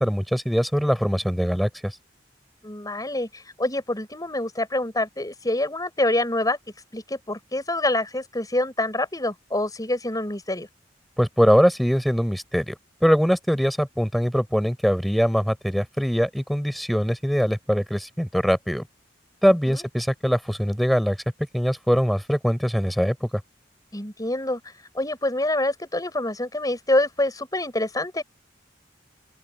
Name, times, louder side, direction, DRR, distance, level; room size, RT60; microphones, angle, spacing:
voice 1, 0.0-1.9 11.2-12.8 13.0-18.9 19.4-21.2 21.5-23.3, equal, ahead, 5.4 m, -22 dB
voice 2, 2.6-6.6 6.9-10.7 19.7-19.8 23.9-24.6 24.9-28.2, left 1 dB, 20° left, 6.7 m, -26 dB
open air
head